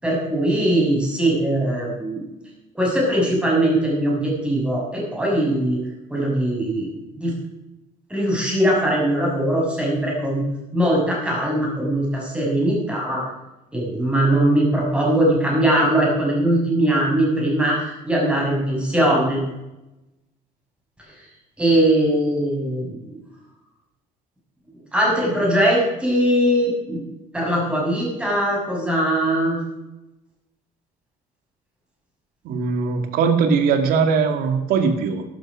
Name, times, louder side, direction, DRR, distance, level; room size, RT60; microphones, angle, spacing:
voice 1, 0.0-2.2 2.7-5.8 6.1-6.9 7.2-7.3 8.1-10.4 10.7-13.2 13.7-19.4 21.2-21.3 21.6-23.2 24.9-27.0 27.3-29.6, right 1 dB, 5° right, -3 dB, 6.4 m, -20 dB
voice 2, 32.4-35.2, right 5 dB, 70° right, 7 dB, 2.2 m, -20 dB
12.5 x 12.0 x 6.4 m, 0.97 s
cardioid pair, 145°, 15 cm